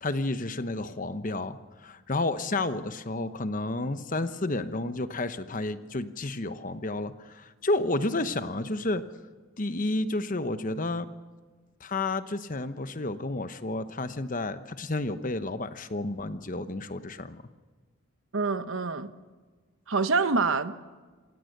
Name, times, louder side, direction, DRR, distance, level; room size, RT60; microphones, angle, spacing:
voice 1, 0.0-9.0 9.6-11.1 11.8-17.4, left 2 dB, 40° left, 1.0 m, -31 dB
voice 2, 18.3-19.1 19.9-20.7, right 4 dB, 65° right, 1.1 m, -26 dB
27.0 x 17.5 x 6.7 m
head